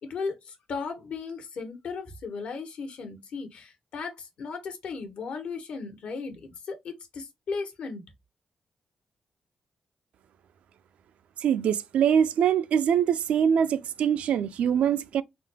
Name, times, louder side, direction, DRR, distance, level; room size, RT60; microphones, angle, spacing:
voice 1, 0.0-8.1, left 4 dB, 75° left, 1.2 m, -36 dB
voice 2, 11.4-15.2, right 8 dB, 85° right, 0.4 m, -23 dB
3.8 x 2.2 x 3.3 m
cardioid pair, 75°, 2 cm